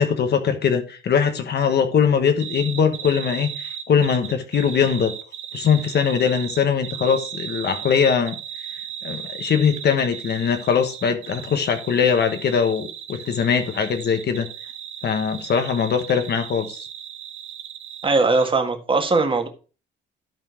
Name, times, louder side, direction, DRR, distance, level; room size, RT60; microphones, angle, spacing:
voice 1, 0.0-5.1 5.5-8.3 9.0-14.5 15.0-16.9, left 7 dB, 55° left, 1.2 m, -21 dB
sound 1, 2.4-18.1 18.3-18.5, right 9 dB, 90° right, 1.2 m, -36 dB
voice 2, 18.0-19.5, right 3 dB, 25° right, 1.8 m, -20 dB
12.0 x 4.5 x 4.5 m
cardioid pair, 90°, 20 cm